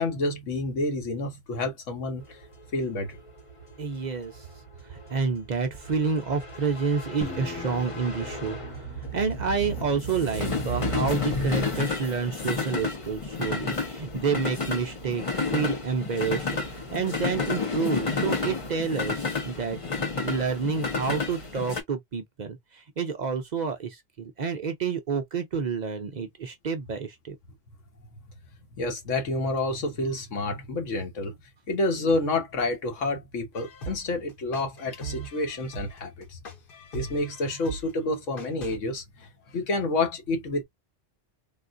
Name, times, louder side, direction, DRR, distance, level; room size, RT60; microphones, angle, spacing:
voice 1, 0.0-2.4 2.7-3.2 28.8-31.3 31.7-36.4 36.9-40.6, left 2 dB, 75° left, 1.3 m, -29 dB
sound 1, 2.3-21.8, left 3 dB, 30° left, 0.7 m, -31 dB
voice 2, 3.8-4.5 4.8-19.8 20.2-27.4, right 5 dB, 55° right, 0.5 m, -29 dB
sound 2, 7.2-9.4, left 4 dB, 10° left, 0.4 m, -40 dB
sound 3, 33.6-38.8, right 4 dB, 45° left, 1.1 m, -39 dB
3.6 x 2.4 x 2.4 m
omnidirectional pair, 1.3 m